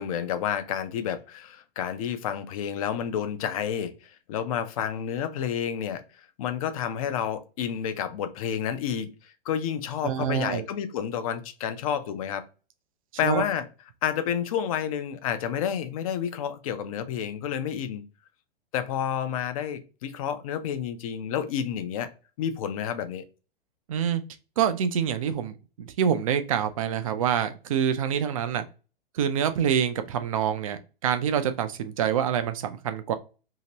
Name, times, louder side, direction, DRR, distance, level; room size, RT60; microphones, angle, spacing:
voice 1, 0.0-12.4 13.2-13.6 14.0-18.0 18.7-22.1 22.4-23.2, left 9 dB, 35° left, 0.5 m, -30 dB
voice 2, 10.0-10.6 13.2-13.4 23.9-24.2 24.6-28.6 29.1-33.1, right 8 dB, 35° right, 0.4 m, -26 dB
2.8 x 2.8 x 2.8 m
figure-of-eight pair, 105°, 30 cm